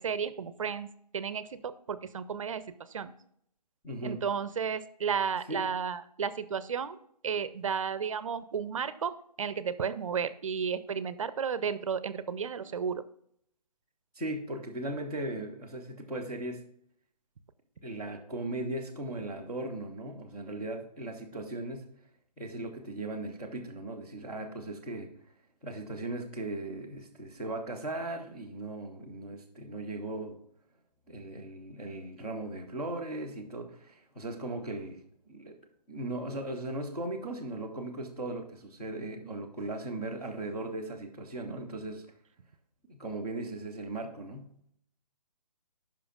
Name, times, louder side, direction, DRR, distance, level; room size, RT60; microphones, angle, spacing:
voice 1, 0.0-2.6 2.9-3.1 4.0-7.0 7.2-9.1 9.4-13.0, right 6 dB, 50° right, 15 dB, 0.6 m, -33 dB
voice 2, 3.8-4.2 5.5-5.6 14.1-16.6 17.8-21.9 22.4-25.1 25.6-30.4 31.1-35.6 35.9-42.1 42.9-44.5, right 2 dB, 5° left, -6 dB, 0.3 m, -38 dB
13.5 x 5.7 x 2.4 m, 0.70 s
hypercardioid pair, 155°, 21 cm